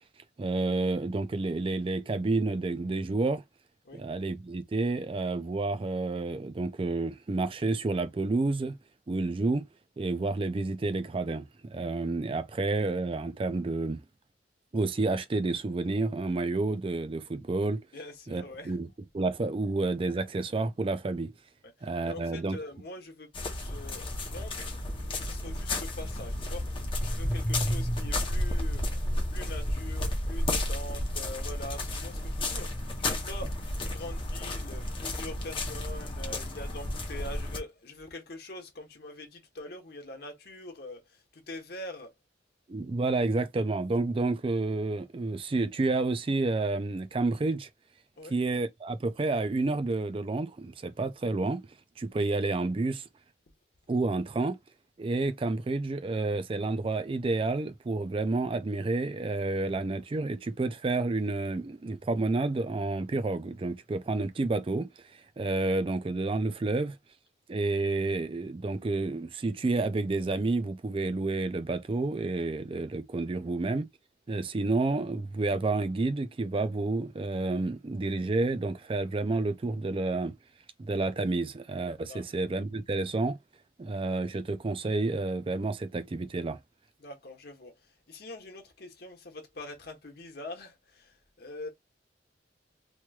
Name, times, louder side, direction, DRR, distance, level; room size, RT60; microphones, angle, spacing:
voice 1, 0.4-3.4 3.9-8.8 9.1-9.7 10.0-14.0 14.7-17.8 18.3-18.9 19.1-21.3 21.8-22.6 42.7-47.7 48.3-51.6 52.0-53.0 53.9-54.6 55.0-64.9 65.4-67.0 67.5-73.9 74.3-80.3 80.8-83.4 83.8-86.6, right 3 dB, 30° right, 0.4 m, -30 dB
voice 2, 17.9-18.8 21.6-28.8 29.3-32.7 33.1-42.1 48.2-48.4 66.7-66.8 82.1-82.2 87.0-91.7, left 2 dB, 60° left, 1.1 m, -44 dB
sound 1, 23.3-37.6, left 1 dB, 30° left, 0.7 m, -32 dB
3.1 x 3.0 x 2.3 m
head